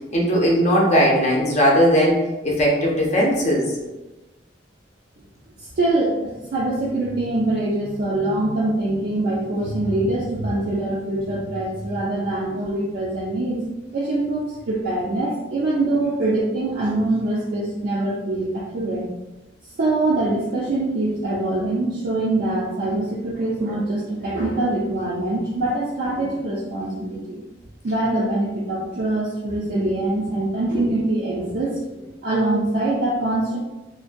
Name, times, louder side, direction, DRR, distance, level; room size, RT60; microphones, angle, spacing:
voice 1, 0.1-2.2 2.4-3.7, equal, 40° left, -2 dB, 0.6 m, -18 dB
voice 2, 5.6-13.6 13.9-19.1 19.8-27.4 27.8-33.6, right 2 dB, 60° right, -6 dB, 0.4 m, -24 dB
2.5 x 2.2 x 2.5 m, 1.1 s
head